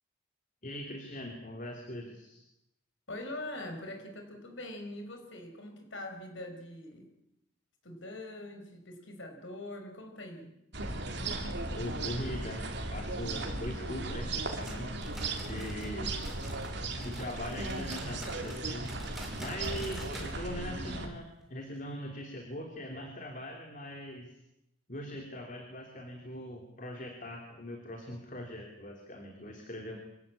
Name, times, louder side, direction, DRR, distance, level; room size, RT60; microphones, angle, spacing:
voice 1, 0.6-2.4 11.7-12.6 12.9-14.9 15.5-16.2 17.0-24.4 24.9-30.0, left 1 dB, 40° left, 2 dB, 3.4 m, -41 dB
voice 2, 3.1-7.1 7.8-10.5, left 1 dB, 70° left, 5 dB, 5.1 m, -43 dB
sound 1, 10.7-21.1, right 2 dB, 55° right, 3.2 m, -36 dB
sound 2, 14.5-16.7 17.0-20.3 20.6-20.7 21.1-21.2 21.8-21.9, right 1 dB, ahead, 4.6 m, -48 dB
26.0 x 16.5 x 8.7 m, 0.84 s
head